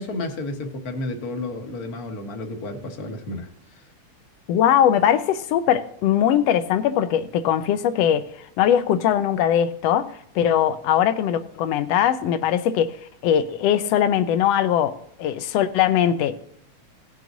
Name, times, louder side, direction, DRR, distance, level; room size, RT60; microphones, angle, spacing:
voice 1, 0.0-3.5, left 2 dB, 50° left, 1.1 m, -31 dB
voice 2, 4.5-8.2 8.6-13.0 13.2-16.3, left 10 dB, 75° left, 1.5 m, -20 dB
18.0 x 7.7 x 2.7 m
omnidirectional pair, 3.4 m